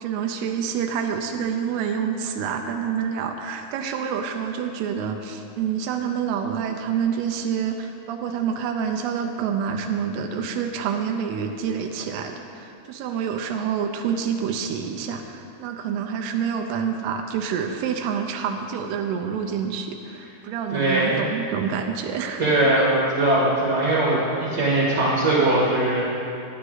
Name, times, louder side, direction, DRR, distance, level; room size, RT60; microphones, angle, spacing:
voice 1, 0.0-22.4 22.7-23.0, right 7 dB, 90° right, 4 dB, 2.7 m, -27 dB
voice 2, 20.7-21.2 22.4-26.0, right 2 dB, 40° right, -6 dB, 1.8 m, -20 dB
15.5 x 10.0 x 4.0 m, 2.6 s
omnidirectional pair, 4.5 m